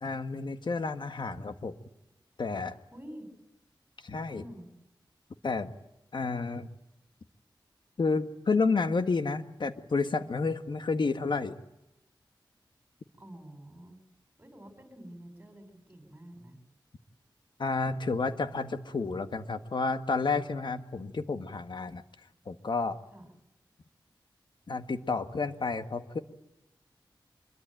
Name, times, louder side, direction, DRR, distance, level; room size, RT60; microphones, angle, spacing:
voice 1, 0.0-1.7 2.4-2.8 4.0-4.4 5.4-5.7 6.1-6.7 8.0-11.6 17.6-22.0 22.4-23.0 24.7-26.2, left 4 dB, 65° left, 9 dB, 1.6 m, -30 dB
voice 2, 2.9-3.3 4.3-4.7 13.2-14.0 14.4-16.6 23.1-23.2, equal, 20° right, 6 dB, 7.8 m, -48 dB
25.0 x 23.0 x 9.2 m, 0.88 s
wide cardioid pair, 85°, 9 cm